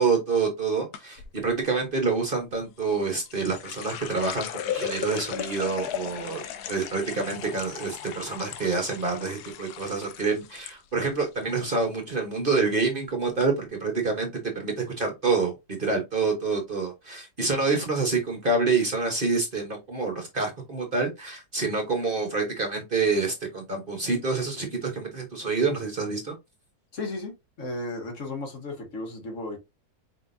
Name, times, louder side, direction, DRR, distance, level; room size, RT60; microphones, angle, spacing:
voice 1, 0.0-6.4 6.7-26.3, right 4 dB, 40° right, 1.1 m, -27 dB
sound 1, 0.9-1.3 2.8-10.7 11.0-11.6 12.0-12.3 13.0-13.1 13.4-13.5, left 10 dB, 80° left, 1.2 m, -36 dB
voice 2, 26.9-29.6, left 2 dB, 55° left, 1.5 m, -34 dB
4.9 x 3.6 x 2.6 m
omnidirectional pair, 1.7 m